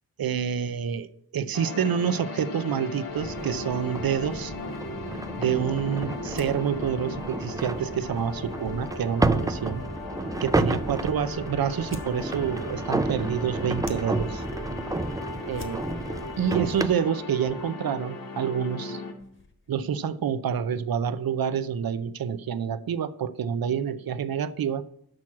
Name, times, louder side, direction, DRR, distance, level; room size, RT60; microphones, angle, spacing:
voice 1, 0.2-1.1 1.3-4.5 5.4-9.8 10.4-14.4 15.5-15.8 16.4-19.0 19.7-24.8, right 8 dB, 70° right, 0.6 m, -28 dB
sound 1, 1.5-19.1, left 3 dB, 65° left, 1.5 m, -38 dB
sound 2, 3.2-16.9, right 2 dB, 10° right, 0.4 m, -31 dB
sound 3, 6.3-19.9, left 3 dB, 35° left, 1.2 m, -51 dB
6.2 x 6.1 x 7.2 m
wide cardioid pair, 105°, 37 cm